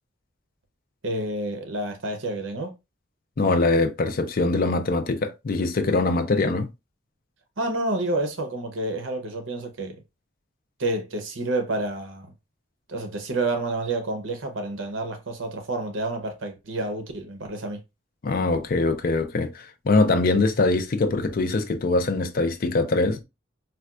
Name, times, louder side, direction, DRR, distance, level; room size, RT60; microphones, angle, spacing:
voice 1, 1.0-2.7 7.6-10.0 10.8-12.3 12.9-17.8, right 2 dB, 75° right, 0.8 m, -29 dB
voice 2, 3.4-6.7 18.2-23.2, left 3 dB, 45° left, 0.4 m, -23 dB
4.2 x 2.3 x 2.3 m
head